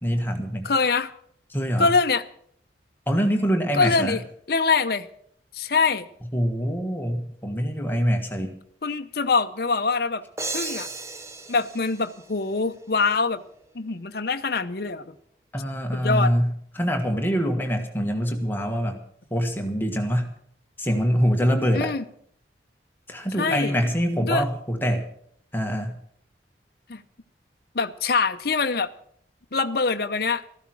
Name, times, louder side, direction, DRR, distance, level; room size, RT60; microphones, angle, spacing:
voice 1, 0.0-0.7 1.5-1.9 3.1-4.2 6.3-8.6 15.5-19.0 19.3-20.3 20.8-21.9 23.1-25.1 25.5-26.0, equal, 10° left, 3 dB, 1.5 m, -24 dB
voice 2, 0.6-1.1 1.8-2.2 3.7-4.2 4.5-5.1 5.5-6.1 8.8-10.2 10.5-10.9 11.5-13.4 13.7-15.1 15.9-16.3 21.7-22.0 23.4-23.7 24.2-24.4 26.9-27.0 27.7-28.9 29.5-30.4, left 4 dB, 55° left, 8 dB, 0.7 m, -24 dB
sound 1, 10.4-13.0, right 3 dB, 15° right, 0.8 m, -35 dB
14.0 x 12.5 x 6.1 m, 0.65 s
head